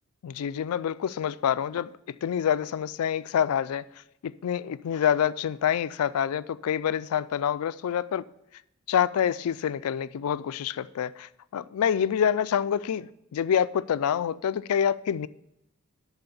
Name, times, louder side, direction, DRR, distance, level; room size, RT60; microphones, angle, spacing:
voice 1, 0.2-3.8 4.2-8.2 8.9-15.3, left 8 dB, 90° left, 0.3 m, -27 dB
10.5 x 4.2 x 6.9 m
head